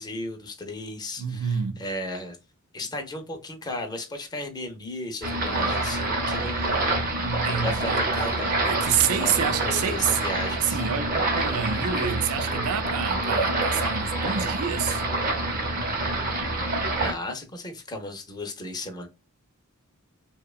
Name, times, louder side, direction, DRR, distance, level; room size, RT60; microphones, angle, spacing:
voice 1, 0.0-2.4 2.7-6.9 7.2-7.3 7.5-8.6 9.2-9.3 9.6-10.8 17.0-19.1, left 1 dB, 20° left, 0.5 m, -35 dB
voice 2, 1.2-1.8 7.2-8.0 8.7-10.2 10.5-15.0, right 7 dB, 80° right, 0.4 m, -28 dB
sound 1, 5.2-17.1, right 2 dB, 40° right, 0.7 m, -26 dB
2.7 x 2.2 x 2.3 m
head